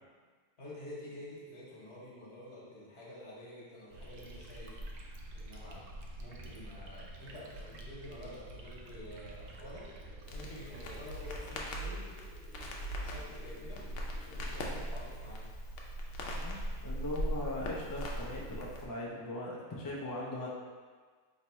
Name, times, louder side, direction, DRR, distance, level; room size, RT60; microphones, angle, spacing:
voice 1, 0.6-4.7 5.3-5.8 6.2-9.8 10.3-12.0 12.9-13.8 14.2-15.5, left 1 dB, 60° left, -6 dB, 1.3 m, -49 dB
sound 1, 3.9-11.6, right 1 dB, 75° right, 0.8 m, -48 dB
sound 2, 9.5-14.8, right 2 dB, 40° right, 1.1 m, -58 dB
Crackle, 10.2-18.9, equal, 80° left, 0.9 m, -39 dB
voice 2, 16.3-20.5, left 1 dB, 35° left, -4 dB, 0.3 m, -40 dB
4.5 x 2.9 x 3.0 m, 1.5 s
omnidirectional pair, 1.2 m